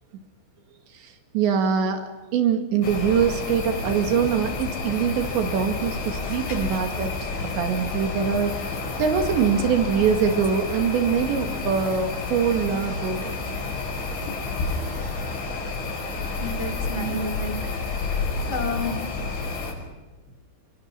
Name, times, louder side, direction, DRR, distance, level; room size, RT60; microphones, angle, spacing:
voice 1, 0.9-7.1 7.4-8.6 9.0-13.4 17.0-17.2, right 7 dB, 70° right, 5 dB, 4.3 m, -23 dB
sound 1, 2.8-19.7, left 3 dB, 85° left, 8.4 m, -30 dB
voice 2, 16.4-18.1 18.5-19.0, left 2 dB, 35° left, 2 dB, 2.2 m, -31 dB
29.5 x 23.5 x 5.9 m, 1.1 s
omnidirectional pair, 5.6 m